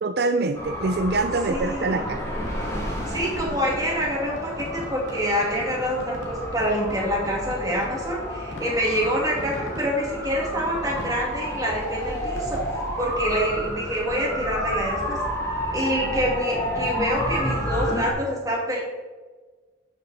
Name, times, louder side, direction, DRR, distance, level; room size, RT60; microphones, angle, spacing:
voice 1, 0.0-2.2, right 3 dB, 55° right, 7 dB, 0.4 m, -24 dB
sound 1, 0.5-18.1, equal, 15° left, 2.8 m, -31 dB
voice 2, 1.5-2.0 3.1-12.6 13.0-15.2 15.7-18.8, equal, 20° right, -2 dB, 2.4 m, -26 dB
Fireworks, 1.6-15.1, left 1 dB, 90° left, 2.0 m, -43 dB
12.0 x 7.1 x 4.1 m, 1.4 s
head